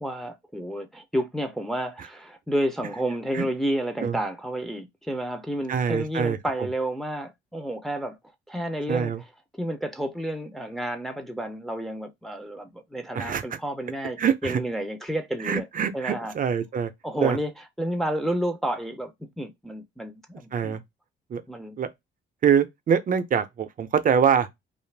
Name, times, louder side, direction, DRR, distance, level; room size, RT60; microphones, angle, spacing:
voice 1, 0.0-8.2 8.5-9.1 9.6-15.7 15.9-16.3 17.0-17.5 17.8-20.8 21.5-21.8, right 1 dB, ahead, 0.5 m, -30 dB
voice 2, 5.7-6.7 8.9-9.2 13.1-13.4 14.2-14.6 15.4-16.9 17.2-17.4 20.5-20.8 21.3-21.4 21.8-21.9 22.4-24.5, right 7 dB, 45° right, 0.5 m, -24 dB
2.5 x 2.4 x 3.2 m
cardioid pair, 90°, 20 cm